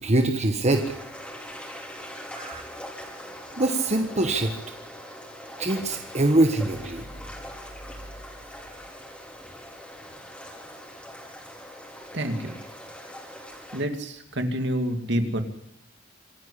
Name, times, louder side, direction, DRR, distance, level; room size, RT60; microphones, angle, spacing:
voice 1, 0.0-0.9 2.3-2.6 3.6-4.6 5.6-7.0, right 2 dB, 35° right, 5 dB, 1.4 m, -23 dB
sound 1, 0.7-13.8, equal, 5° left, 5.0 m, -42 dB
voice 2, 12.1-12.6 13.7-15.4, equal, 60° right, 6 dB, 2.4 m, -27 dB
26.0 x 10.5 x 10.0 m, 0.78 s
head